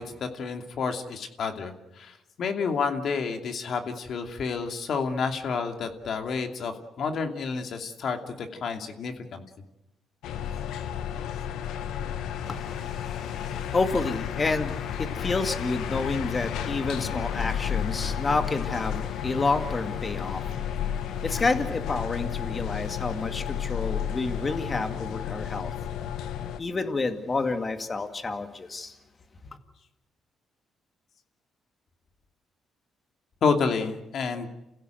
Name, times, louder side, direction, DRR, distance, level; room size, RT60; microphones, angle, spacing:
voice 1, 0.0-9.4 33.4-34.5, left 5 dB, 60° left, 2.7 m, -30 dB
sound 1, 10.2-26.6, left 9 dB, 85° left, 1.4 m, -32 dB
voice 2, 12.4-25.7 26.6-28.9, left 3 dB, 30° left, 2.2 m, -29 dB
29.0 x 16.0 x 7.9 m
cardioid pair, 90°, 0 cm